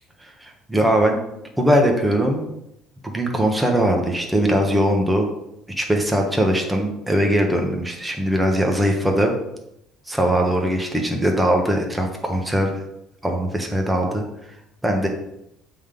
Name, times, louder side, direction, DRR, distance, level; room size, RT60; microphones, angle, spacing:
voice 1, 0.2-1.2 1.6-2.5 3.0-5.3 5.8-9.3 10.1-12.7 13.2-14.2 14.8-15.1, equal, 5° right, 2 dB, 1.2 m, -20 dB
7.7 x 3.8 x 5.2 m, 0.83 s
cardioid pair, 115°, 0 cm